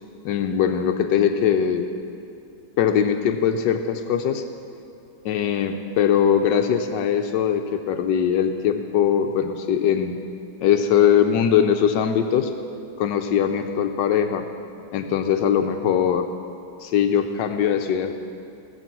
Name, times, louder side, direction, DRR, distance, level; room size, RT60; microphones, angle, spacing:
voice 1, 0.2-1.9 2.8-4.4 5.2-10.1 10.6-12.5 13.0-14.4 14.9-16.3 16.8-18.1, left 8 dB, 80° left, 6 dB, 1.3 m, -21 dB
18.0 x 7.6 x 6.0 m, 2.5 s
omnidirectional pair, 1.9 m